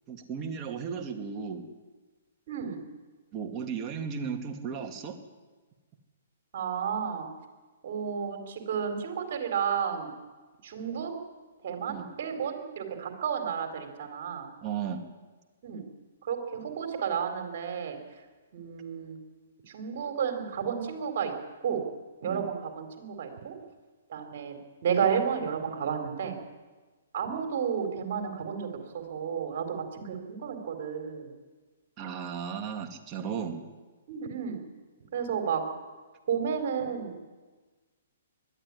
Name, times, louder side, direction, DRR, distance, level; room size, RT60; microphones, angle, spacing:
voice 1, 0.1-1.6 3.3-5.2 11.9-12.1 14.6-15.0 22.2-22.4 32.0-33.6, right 6 dB, 25° right, 3 dB, 2.5 m, -35 dB
voice 2, 2.5-2.8 6.5-7.3 7.8-10.1 10.6-11.1 11.6-14.5 15.6-15.8 16.2-18.0 18.5-19.2 19.7-21.3 21.6-21.8 22.2-23.5 24.1-24.6 24.8-26.3 27.1-31.3 34.1-34.6 35.1-35.6 36.3-37.3, right 7 dB, 55° right, 5 dB, 4.4 m, -32 dB
21.0 x 13.5 x 9.9 m, 1.3 s
hypercardioid pair, 135°, 0 cm